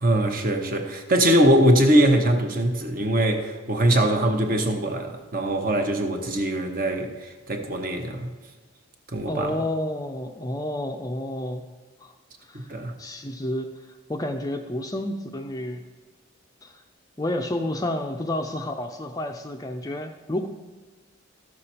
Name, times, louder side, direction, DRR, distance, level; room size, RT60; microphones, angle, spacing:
voice 1, 0.0-8.3 9.1-9.6 12.7-12.9, right 1 dB, 45° right, 1.0 m, -22 dB
voice 2, 9.3-11.7 12.0-12.1 12.5-13.7 14.1-15.8 16.6-16.7 17.2-20.5, left 1 dB, 15° left, 0.5 m, -30 dB
13.0 x 6.8 x 4.3 m
head